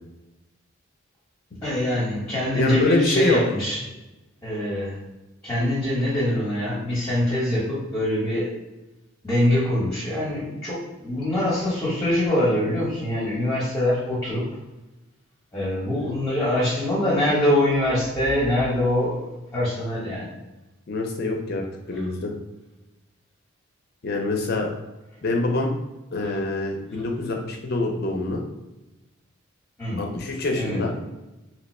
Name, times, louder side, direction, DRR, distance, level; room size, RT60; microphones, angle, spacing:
voice 1, 1.6-3.8 4.4-5.0 5.4-8.5 9.2-14.5 15.5-20.3 21.9-22.0 29.8-30.1 30.5-30.8, left 1 dB, 15° left, -9 dB, 0.9 m, -24 dB
voice 2, 2.5-3.4 20.9-22.3 24.0-24.7 25.2-25.7 26.1-28.4 30.0-30.9, left 2 dB, 50° left, 2 dB, 0.5 m, -25 dB
2.8 x 2.1 x 4.1 m, 1.0 s
head